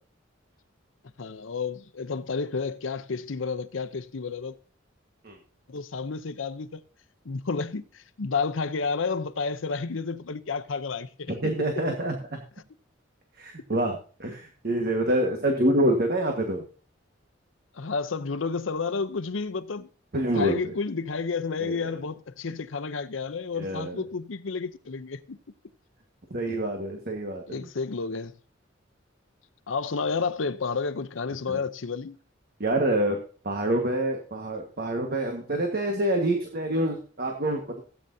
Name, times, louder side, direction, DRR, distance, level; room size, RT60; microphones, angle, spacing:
voice 1, 1.2-4.6 5.7-6.8 7.2-11.5 15.2-15.4 17.7-19.9 20.3-25.4 27.5-28.3 29.7-32.2, left 4 dB, 85° left, 0.7 m, -31 dB
voice 2, 11.3-12.4 13.4-16.6 20.1-20.7 21.6-21.8 23.6-24.0 26.3-27.7 31.5-31.6 32.6-33.2 33.4-37.8, right 1 dB, 50° right, 1.6 m, -27 dB
17.0 x 8.9 x 2.7 m
head